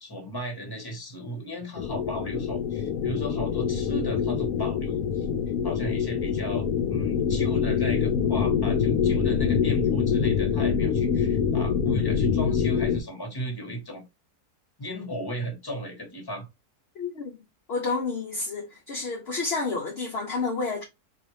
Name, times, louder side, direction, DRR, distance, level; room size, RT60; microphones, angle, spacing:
voice 1, 0.0-5.3 5.6-14.0 14.8-16.5, right 1 dB, 15° left, 1.2 m, -36 dB
sound 1, 1.8-13.0, left 7 dB, 75° left, 1.1 m, -25 dB
voice 2, 17.0-17.3 17.7-20.8, left 4 dB, 55° left, 0.8 m, -30 dB
4.1 x 2.7 x 3.1 m
omnidirectional pair, 1.6 m